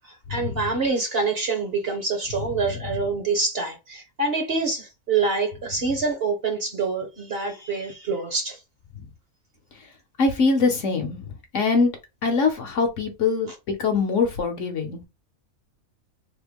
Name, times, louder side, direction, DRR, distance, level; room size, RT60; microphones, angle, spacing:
voice 1, 0.3-8.6, right 4 dB, 45° right, 0.9 m, -26 dB
voice 2, 10.2-11.3 11.5-11.9 12.2-15.1, left 4 dB, 60° left, 1.1 m, -23 dB
3.6 x 2.1 x 3.4 m
omnidirectional pair, 1.6 m